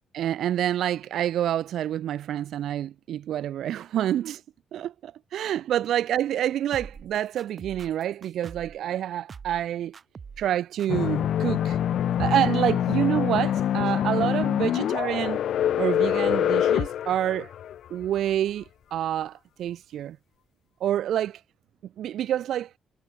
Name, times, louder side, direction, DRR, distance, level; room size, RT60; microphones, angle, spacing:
voice 1, 0.1-4.4 4.7-9.9 10.4-11.8 12.2-15.4 15.8-17.5 17.9-18.6 18.9-20.2 20.8-21.4 22.0-22.7, right 11 dB, 75° right, 0.6 m, -27 dB
sound 1, 6.7-8.8 9.3-9.7 9.9-10.5 10.8-10.9, right 5 dB, 40° right, 1.4 m, -43 dB
sound 2, 10.9-18.1, left 10 dB, 70° left, 0.9 m, -25 dB
cardioid pair, 90°, 0 cm